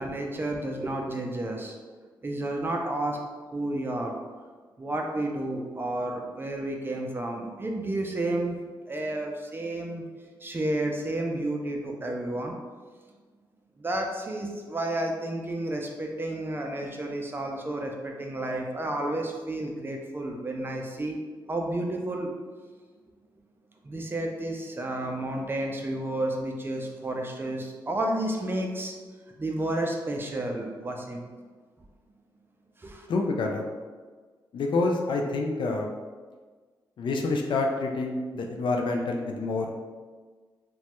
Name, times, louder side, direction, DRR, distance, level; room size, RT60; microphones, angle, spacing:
voice 1, 0.0-1.8 2.2-3.2 3.5-4.2 4.8-8.6 8.9-10.0 10.4-12.6 13.8-21.2 21.5-22.3 23.8-28.9 29.4-31.2 32.8-33.1, right 1 dB, 25° right, 1 dB, 0.4 m, -31 dB
voice 2, 33.1-33.7 34.5-35.9 37.0-39.8, left 3 dB, 70° left, 2 dB, 0.4 m, -27 dB
3.0 x 2.2 x 2.9 m, 1.4 s
cardioid pair, 80°, 9 cm